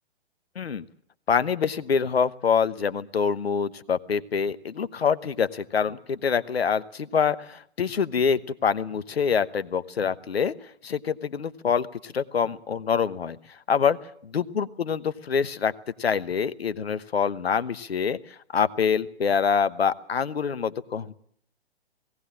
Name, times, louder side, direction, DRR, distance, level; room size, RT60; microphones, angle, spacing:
voice 1, 1.3-10.5 10.8-13.4 13.7-14.0 14.3-15.7 16.0-18.2 18.5-21.1, left 6 dB, 70° left, 15 dB, 1.1 m, -25 dB
18.0 x 17.5 x 8.6 m, 0.63 s
figure-of-eight pair, 125°, 32 cm